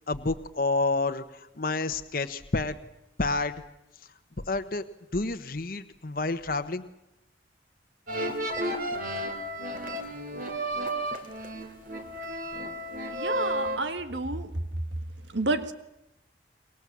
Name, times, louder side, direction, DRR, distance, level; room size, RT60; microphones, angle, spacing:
voice 1, 0.0-2.8 3.2-3.6 4.5-4.8 5.1-6.9, left 3 dB, 50° left, 1.1 m, -29 dB
sound 1, 8.1-13.8, right 1 dB, 50° right, 3.1 m, -32 dB
voice 2, 13.1-14.6 15.3-15.7, right 2 dB, 85° right, 1.8 m, -30 dB
28.0 x 23.0 x 7.4 m
head